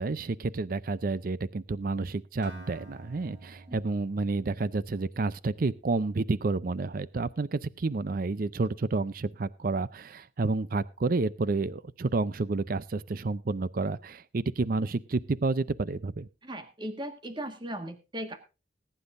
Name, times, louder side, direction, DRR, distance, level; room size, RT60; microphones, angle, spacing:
voice 1, 0.0-16.3, right 3 dB, 50° right, 17 dB, 0.5 m, -30 dB
Acoustic guitar, 2.4-6.3, right 1 dB, 75° right, 3.3 m, -51 dB
voice 2, 16.4-18.4, right 1 dB, 25° right, 7 dB, 1.6 m, -37 dB
20.0 x 10.0 x 2.6 m, 0.30 s
head